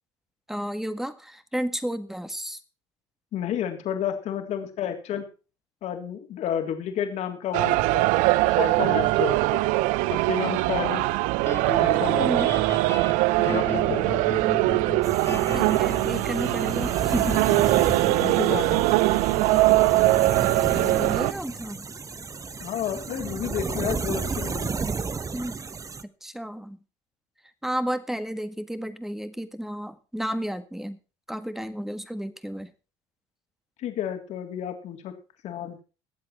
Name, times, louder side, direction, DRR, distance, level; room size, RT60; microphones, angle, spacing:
voice 1, 0.5-2.6 12.2-12.5 15.5-17.4 20.7-21.8 25.3-25.6 26.2-26.8 27.6-31.0 31.3-32.7, equal, 5° right, 11 dB, 1.8 m, -32 dB
voice 2, 3.3-5.3 5.8-8.1 8.5-9.6 10.1-11.0 11.8-12.5 13.4-14.0 18.2-18.9 22.6-24.8 33.8-35.2 35.4-35.8, left 9 dB, 60° left, 6 dB, 3.3 m, -31 dB
sound 1, 7.5-21.3, right 19 dB, 70° right, 0.5 m, -22 dB
sound 2, 11.5-23.8, left 3 dB, 20° left, 1.9 m, -38 dB
sound 3, 15.0-26.0, right 5 dB, 25° right, 1.0 m, -33 dB
21.0 x 7.9 x 4.5 m, 0.34 s
hypercardioid pair, 75°, 13 cm